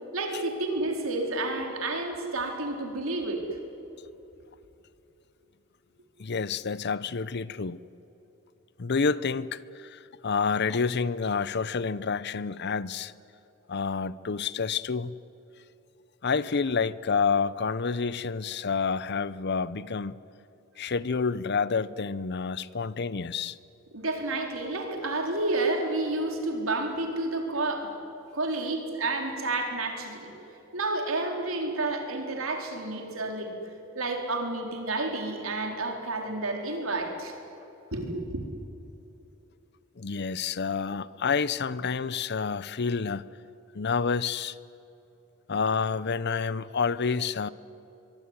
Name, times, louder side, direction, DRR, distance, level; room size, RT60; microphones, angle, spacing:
voice 1, 0.1-3.4 23.9-27.9 28.3-30.3 30.7-33.5 33.9-37.3 37.9-38.4, right 2 dB, 90° right, 4.3 m, -30 dB
voice 2, 6.2-7.8 8.8-13.1 13.7-15.2 16.2-20.2 20.8-23.6 40.0-43.2 43.7-44.6 45.5-47.5, left 5 dB, 55° left, 0.7 m, -28 dB
24.0 x 23.0 x 9.8 m
head